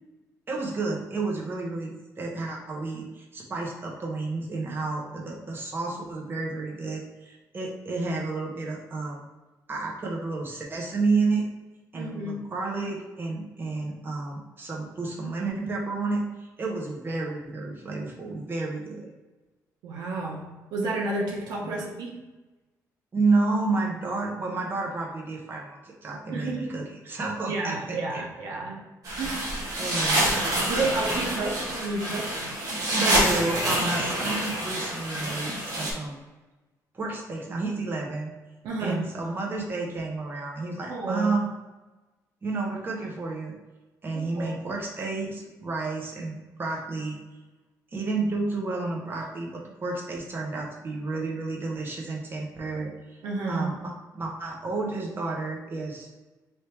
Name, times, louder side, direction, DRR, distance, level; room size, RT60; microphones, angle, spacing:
voice 1, 0.5-9.2 9.7-11.5 11.9-19.1 21.6-21.8 23.1-28.2 29.7-30.3 32.9-36.2 36.9-38.3 38.8-41.5 42.4-43.5 44.0-47.2 47.9-53.2 53.5-56.1, right 3 dB, 35° right, -1 dB, 1.0 m, -31 dB
voice 2, 11.9-12.4 19.8-22.2 26.3-26.8 27.5-28.8 29.1-29.4 30.7-32.4 38.6-39.0 40.9-41.3 44.1-44.6 53.2-53.7, right 3 dB, 90° right, -1 dB, 0.8 m, -31 dB
sound 1, 29.0-35.9, right 1 dB, 65° right, 1.3 m, -27 dB
3.5 x 2.8 x 4.4 m, 1.1 s
cardioid pair, 110°, 7 cm